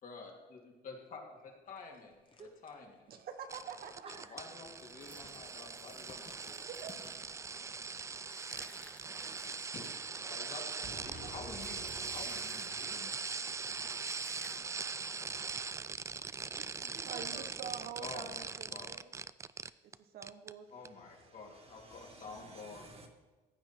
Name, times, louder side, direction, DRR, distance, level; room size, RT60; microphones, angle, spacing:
voice 1, 0.0-2.2 2.6-2.9 4.3-6.5 9.7-9.9 10.3-11.9 12.1-13.4 18.0-18.9 20.7-22.8, left 4 dB, 50° left, 0 dB, 2.7 m, -49 dB
sound 1, 1.7-7.5, left 3 dB, 30° left, 1.4 m, -61 dB
voice 2, 3.1-4.1 6.7-6.9 10.2-10.5 10.8-11.3 16.6-19.1 19.8-20.7, right 7 dB, 60° right, 7 dB, 1.1 m, -47 dB
sound 2, 3.5-20.0 20.2-20.5 20.9-21.0, right 5 dB, 15° right, 0.3 m, -41 dB
voice 3, 4.0-4.4 6.5-6.6 9.2-9.4 10.8-14.2 16.8-17.7 18.0-18.1 20.7-23.1, right 2 dB, 35° right, 2 dB, 2.1 m, -53 dB
sound 3, 4.5-15.0 15.2-15.5 15.8-15.9 16.4-17.0, left 1 dB, 10° left, 1.4 m, -60 dB
15.0 x 8.8 x 4.5 m, 1.3 s
cardioid pair, 110°, 17 cm